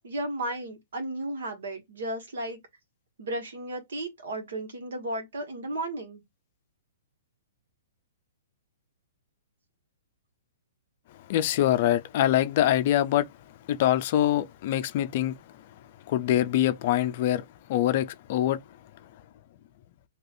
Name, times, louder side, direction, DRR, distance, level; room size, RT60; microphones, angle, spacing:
voice 1, 0.0-2.6 3.2-6.2, right 1 dB, 75° right, 1.6 m, -34 dB
voice 2, 11.3-13.3 13.7-15.4 16.1-17.4 17.7-18.6, left 12 dB, 40° left, 0.4 m, -24 dB
3.3 x 2.8 x 2.5 m
hypercardioid pair, 160°, 0 cm